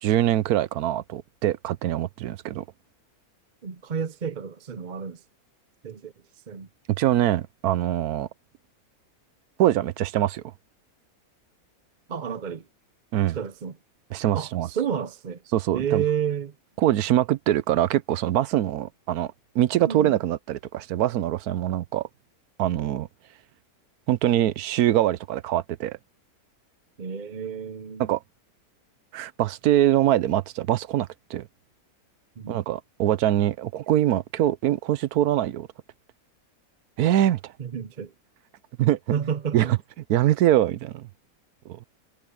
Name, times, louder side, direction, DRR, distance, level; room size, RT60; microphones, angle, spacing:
voice 1, 0.0-2.7 6.9-8.3 9.6-10.4 13.1-13.4 14.1-14.7 15.5-16.0 16.8-22.1 22.6-23.1 24.1-26.0 28.0-28.2 29.1-31.5 32.5-35.7 37.0-37.5 38.8-39.0 39.5-39.6 40.1-41.1 41.7-41.8, right 12 dB, 80° right, 1.2 m, -23 dB
voice 2, 3.6-5.2 5.8-6.7 12.1-12.7 13.3-13.8 14.3-15.4 15.7-16.5 19.8-20.1 27.0-28.1 32.4-32.6 37.6-38.1 39.1-39.8, right 7 dB, 40° right, 0.7 m, -31 dB
omnidirectional pair, 1.6 m